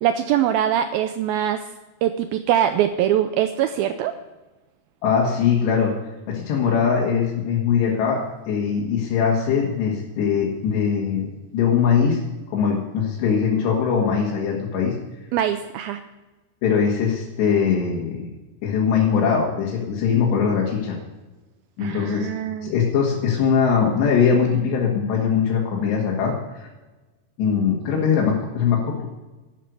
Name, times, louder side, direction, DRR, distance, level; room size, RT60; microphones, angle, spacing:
voice 1, 0.0-1.6 2.0-4.1 15.3-16.0 21.8-22.7, right 10 dB, 85° right, 9 dB, 2.1 m, -22 dB
voice 2, 5.0-5.9 6.3-8.2 8.5-12.2 12.5-14.9 16.6-18.3 18.6-21.0 21.8-22.3 22.6-26.3 26.6-26.7 27.4-29.1, left 6 dB, 80° left, -4 dB, 4.1 m, -21 dB
13.0 x 10.0 x 6.4 m, 1.1 s
omnidirectional pair, 4.9 m